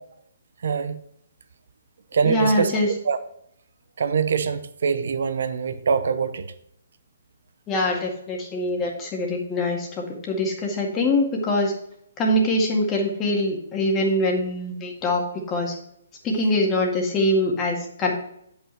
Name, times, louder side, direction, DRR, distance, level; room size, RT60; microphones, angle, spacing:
voice 1, 0.6-1.0 2.1-2.8 3.0-3.2 4.0-6.5, right 6 dB, 65° right, 12 dB, 0.8 m, -24 dB
voice 2, 2.2-2.9 7.7-11.7 12.2-15.2 15.5-15.7 16.2-18.1, left 1 dB, 20° left, 0 dB, 1.9 m, -23 dB
8.7 x 5.5 x 4.4 m, 0.73 s
hypercardioid pair, 140°, 0 cm